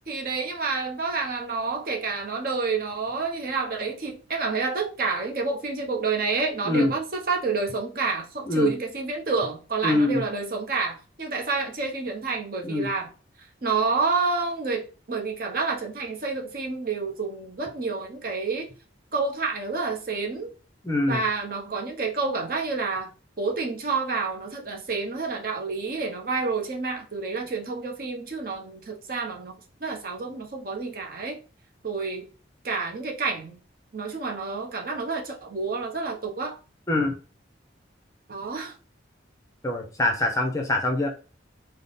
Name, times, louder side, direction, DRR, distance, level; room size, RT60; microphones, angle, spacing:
voice 1, 0.1-13.1 13.4-18.7 19.1-20.5 21.1-23.1 23.4-31.4 31.8-32.3 32.6-33.6 33.9-36.6 38.3-38.7, right 4 dB, 50° right, 0.7 m, -29 dB
voice 2, 9.8-10.2 12.6-12.9 20.8-21.2 36.9-37.1 39.6-41.1, left 2 dB, 15° left, 0.5 m, -24 dB
3.6 x 2.0 x 3.8 m
head